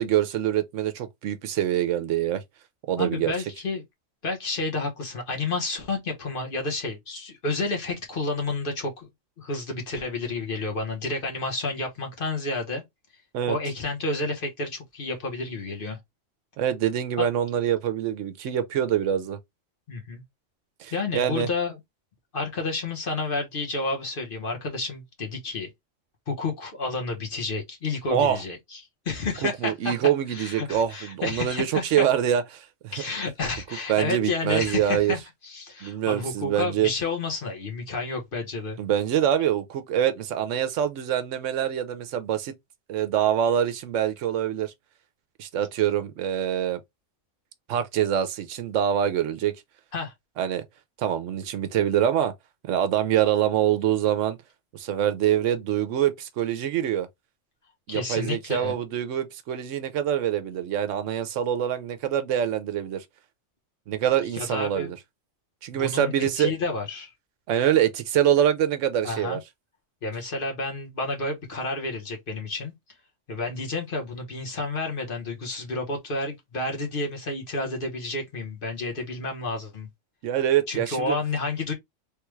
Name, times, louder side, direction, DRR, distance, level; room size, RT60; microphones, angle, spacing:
voice 1, 0.0-2.4 2.9-3.3 13.3-13.6 16.6-19.4 20.8-21.5 28.1-28.4 29.4-32.9 33.9-35.1 35.8-36.9 38.8-42.5 42.9-44.7 45.4-46.8 47.7-49.5 50.4-50.6 51.0-52.3 52.6-54.4 54.7-57.1 57.9-63.0 63.9-65.0 65.6-66.5 67.5-69.4 80.2-81.2, right 10 dB, 80° right, 1.0 m, -25 dB
voice 2, 3.0-3.8 4.2-9.1 9.4-12.8 13.5-16.0 17.2-17.3 19.9-20.2 20.9-21.8 22.3-25.7 26.3-29.9 30.3-32.1 32.9-38.8 49.9-50.1 57.9-58.8 64.3-64.9 65.7-67.1 69.0-69.4 70.0-72.7 73.3-79.9 80.7-81.7, left 3 dB, 50° left, 1.1 m, -30 dB
3.4 x 2.3 x 3.1 m
omnidirectional pair, 1.3 m